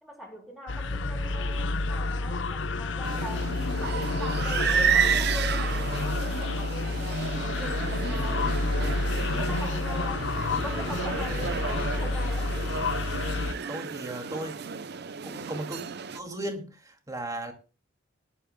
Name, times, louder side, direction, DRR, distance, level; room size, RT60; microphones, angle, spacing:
voice 1, 0.0-8.6 9.3-12.6, left 1 dB, ahead, 3.8 m, -41 dB
sound 1, 0.7-13.5, left 3 dB, 65° left, 0.8 m, -29 dB
Motorcycle / Traffic noise roadway noise, 0.9-6.1, equal, 20° left, 1.3 m, -47 dB
sound 2, 3.0-16.2, right 7 dB, 55° right, 0.6 m, -32 dB
voice 2, 13.7-14.6 15.2-15.8 16.1-17.5, right 1 dB, 20° right, 2.3 m, -36 dB
21.5 x 11.5 x 2.2 m
head